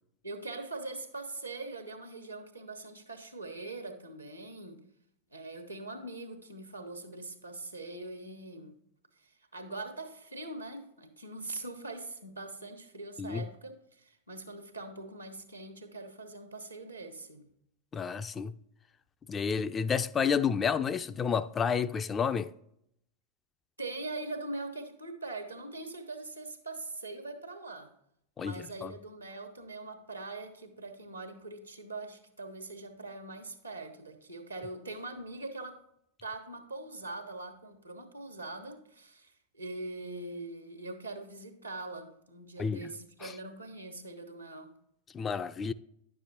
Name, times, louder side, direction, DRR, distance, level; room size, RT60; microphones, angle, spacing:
voice 1, 0.2-4.8 5.3-8.7 9.2-17.5 23.8-27.9 28.4-35.8 36.2-44.7, right 2 dB, 85° right, 1.1 m, -42 dB
voice 2, 17.9-18.5 19.3-22.5 28.4-28.9 42.6-42.9 43.2-43.3 45.1-45.7, left 6 dB, 20° left, 0.3 m, -30 dB
9.9 x 6.8 x 2.7 m
figure-of-eight pair, 90°, 0 cm